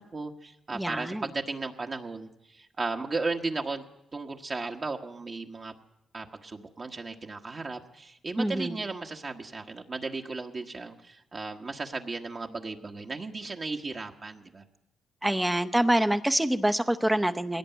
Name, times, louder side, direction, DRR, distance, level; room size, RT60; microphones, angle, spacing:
voice 1, 0.0-3.8 4.1-5.7 6.1-14.6, right 3 dB, 35° right, 2 dB, 1.4 m, -35 dB
voice 2, 0.7-1.3 8.4-8.8 15.2-17.6, right 1 dB, 10° right, 8 dB, 0.8 m, -26 dB
20.5 x 17.5 x 9.2 m, 0.83 s
cardioid pair, 105°, 0 cm